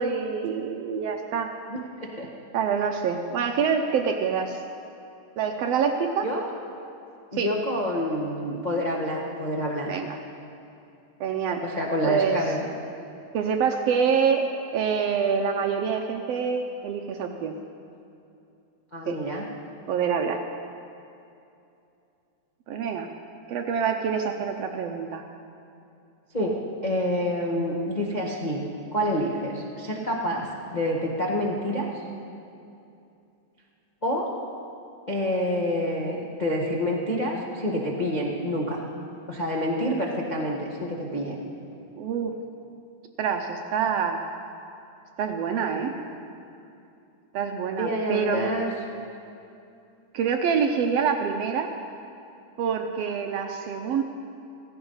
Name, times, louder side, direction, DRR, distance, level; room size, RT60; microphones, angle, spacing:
voice 1, 0.0-1.5 2.5-4.6 5.4-6.3 7.3-7.5 9.8-10.2 11.2-11.6 12.0-12.4 13.3-14.5 14.7-17.6 19.1-19.2 19.9-20.4 22.7-23.1 23.5-25.2 42.0-42.3 43.2-44.2 45.2-45.9 47.3-48.4 50.1-51.7 52.6-54.0, right 6 dB, 75° right, 4 dB, 1.4 m, -26 dB
voice 2, 1.7-2.3 6.2-6.5 7.3-9.9 11.6-12.7 18.9-19.4 26.3-26.5 26.8-28.6 28.9-31.9 34.0-34.3 35.1-38.8 39.3-41.3 45.9-46.0 47.8-48.7, equal, 60° left, -3 dB, 0.4 m, -27 dB
16.0 x 15.5 x 5.6 m, 2.7 s
omnidirectional pair, 3.6 m